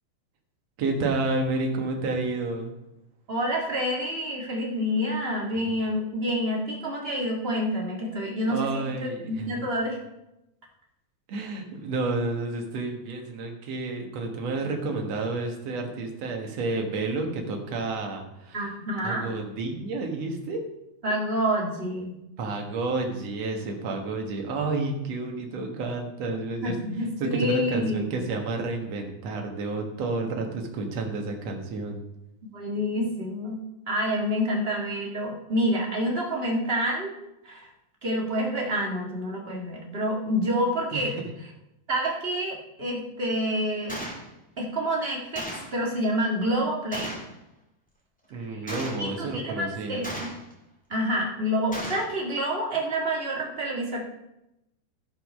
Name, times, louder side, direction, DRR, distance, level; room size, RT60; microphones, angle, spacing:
voice 1, 0.8-2.7 5.6-5.7 8.5-9.6 11.3-18.7 19.0-20.6 22.4-26.8 27.2-32.0 40.9-41.3 48.3-50.1, right 3 dB, 55° right, 2 dB, 2.2 m, -30 dB
voice 2, 3.3-10.0 18.5-19.2 21.0-22.2 26.6-28.1 32.4-33.6 33.9-37.1 37.4-37.7 38.0-41.1 41.9-44.0 44.6-47.2 48.5-48.6 49.0-50.3 50.9-54.0, equal, 30° right, -2 dB, 1.0 m, -28 dB
Gunshot gunfire, 43.9-44.2 45.4-45.8 46.9-47.3 48.7-49.1 50.0-50.5 51.7-52.1, equal, 5° left, 1.2 m, -35 dB
15.0 x 5.6 x 5.4 m, 0.89 s
omnidirectional pair, 4.1 m